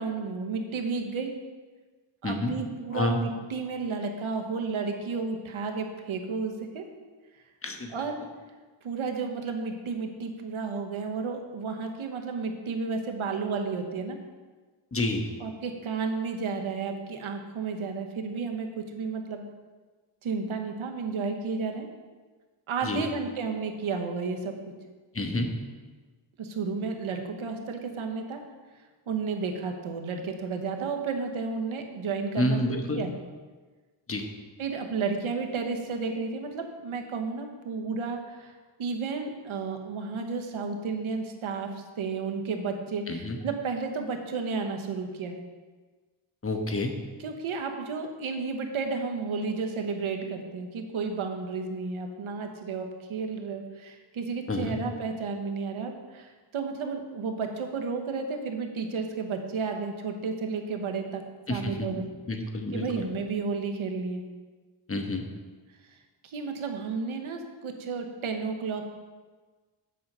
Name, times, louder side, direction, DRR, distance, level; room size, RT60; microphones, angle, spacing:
voice 1, 0.0-1.3 2.2-6.8 7.9-8.2 8.8-14.2 15.4-19.4 20.2-21.9 22.7-24.5 26.4-28.4 29.1-33.1 34.6-45.4 47.2-61.2 61.5-62.1 62.7-64.2 66.2-68.9, right 4 dB, 85° right, 4 dB, 1.1 m, -32 dB
voice 2, 2.2-2.5 2.9-3.2 7.6-7.9 14.9-15.3 22.8-23.1 25.1-25.5 32.4-33.0 34.1-34.3 43.1-43.4 46.4-46.9 54.5-54.8 61.5-61.8 62.3-62.9 64.9-65.3, left 2 dB, 30° left, 4 dB, 1.2 m, -29 dB
7.7 x 5.5 x 6.7 m, 1.4 s
cardioid pair, 80°, 48 cm